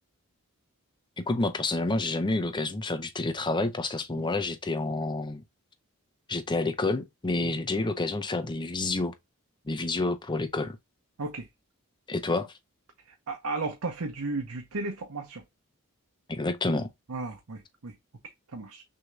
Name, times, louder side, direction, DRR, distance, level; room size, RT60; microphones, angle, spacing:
voice 1, 1.2-5.4 6.3-9.1 9.7-10.8 12.1-12.5 16.3-16.9, left 2 dB, 20° left, 0.6 m, -29 dB
voice 2, 13.3-15.4 17.1-17.9 18.2-18.8, right 3 dB, 75° right, 0.8 m, -35 dB
6.2 x 2.8 x 2.3 m
head